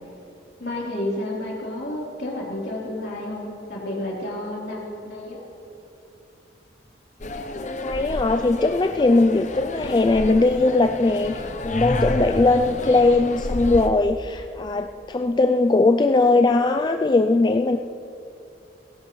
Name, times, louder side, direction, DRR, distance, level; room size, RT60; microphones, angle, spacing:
voice 1, 0.6-5.4, left 1 dB, 60° left, -4 dB, 3.5 m, -31 dB
sound 1, 7.2-13.9, left 1 dB, 40° left, 0.7 m, -31 dB
voice 2, 7.5-17.8, left 3 dB, 25° left, 6 dB, 0.3 m, -20 dB
18.5 x 16.5 x 3.1 m, 2.6 s
head